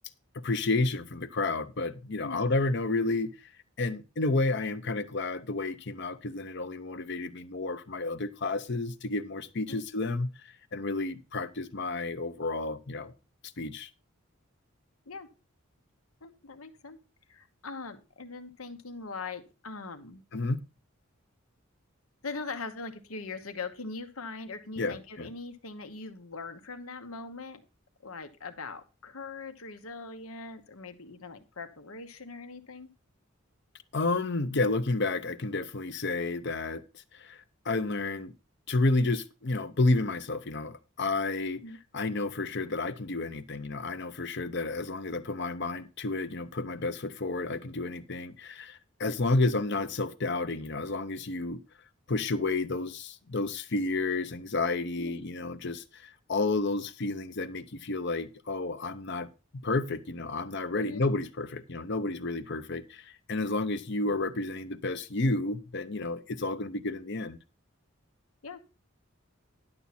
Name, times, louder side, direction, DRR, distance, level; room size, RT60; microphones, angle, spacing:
voice 1, 0.4-3.5 3.8-13.1 13.6-13.9 20.3-20.6 24.8-25.3 33.9-38.3 38.7-41.6 41.9-51.6 52.1-67.4, left 2 dB, 55° left, 0.7 m, -31 dB
voice 2, 16.2-17.0 17.3-20.2 22.2-27.6 28.0-32.9 41.6-41.8 55.0-55.2 60.8-61.0 68.4-68.6, left 4 dB, 90° left, 1.2 m, -41 dB
11.0 x 7.1 x 4.2 m
head